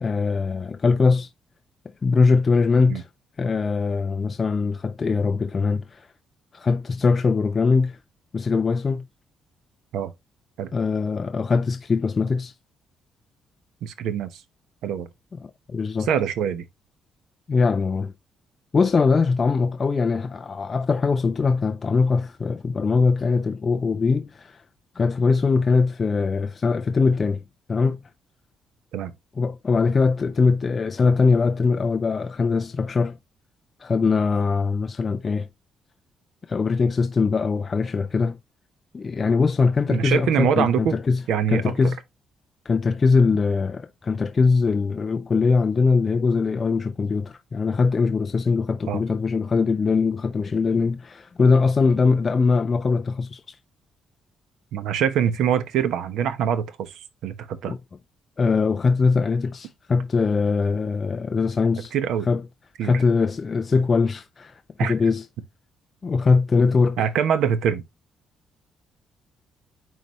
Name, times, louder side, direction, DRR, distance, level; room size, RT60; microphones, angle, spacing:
voice 1, 0.0-1.3 2.0-3.1 3.4-6.1 6.5-8.0 8.3-9.1 10.7-12.5 15.4-16.1 17.5-18.1 18.7-24.6 25.0-27.4 27.7-28.0 29.4-33.2 33.8-35.5 36.5-38.4 38.9-41.2 41.5-42.0 42.7-53.6 57.7-57.8 58.4-61.9 62.3-62.4 62.8-65.2 66.0-67.1, left 4 dB, 25° left, 0.3 m, -21 dB
voice 2, 13.8-14.4 14.8-15.1 16.1-16.6 28.9-29.1 39.9-40.9 41.3-41.7 48.9-49.0 54.7-57.3 57.6-57.7 61.9-62.3 62.8-62.9 64.8-64.9 67.0-67.8, right 8 dB, 75° right, 0.9 m, -24 dB
9.3 x 4.0 x 3.0 m
cardioid pair, 180°, 0 cm